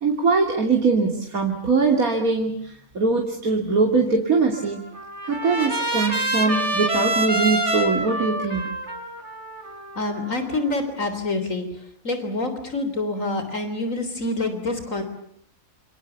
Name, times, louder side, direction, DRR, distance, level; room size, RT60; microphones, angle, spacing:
voice 1, 0.0-4.8 5.3-8.8, right 4 dB, 85° right, 1 dB, 3.3 m, -22 dB
Trumpet, 4.5-10.7, right 2 dB, 50° right, 4.6 m, -27 dB
voice 2, 10.0-11.7 12.0-15.0, left 2 dB, 65° left, 9 dB, 4.0 m, -26 dB
28.5 x 26.5 x 7.0 m, 0.69 s
omnidirectional pair, 1.5 m